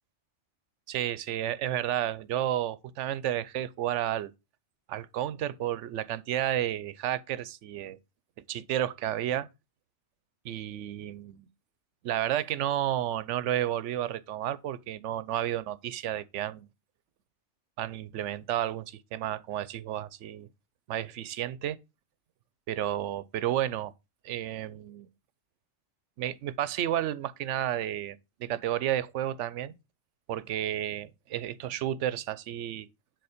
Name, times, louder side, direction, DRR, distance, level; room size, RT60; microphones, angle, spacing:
voice 1, 0.9-4.3 4.9-8.0 8.5-9.5 10.4-11.5 12.0-16.7 17.8-20.5 20.9-21.8 22.7-23.9 24.2-25.1 26.2-29.8 30.3-32.9, right 12 dB, 85° right, 0.9 m, -31 dB
6.9 x 3.9 x 4.9 m
omnidirectional pair, 1.2 m